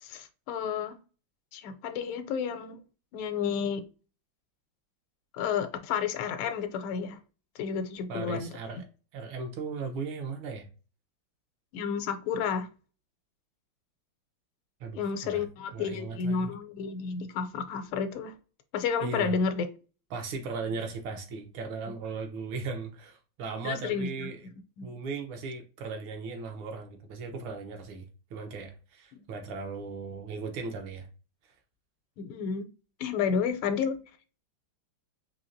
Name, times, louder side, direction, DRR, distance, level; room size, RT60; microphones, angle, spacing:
voice 1, 0.0-1.0 1.5-2.8 3.1-3.8 5.3-7.2 7.5-8.5 11.7-12.7 14.9-18.3 18.7-19.7 23.6-24.3 24.8-24.9 29.1-29.2 32.2-32.7 33.0-34.0, left 6 dB, 85° left, 1.4 m, -31 dB
voice 2, 8.1-8.8 9.1-10.7 14.8-15.4 15.7-16.5 19.0-19.3 20.1-24.5 24.8-28.0 28.3-31.1, right 4 dB, 80° right, 1.6 m, -37 dB
4.4 x 2.8 x 2.6 m
omnidirectional pair, 2.3 m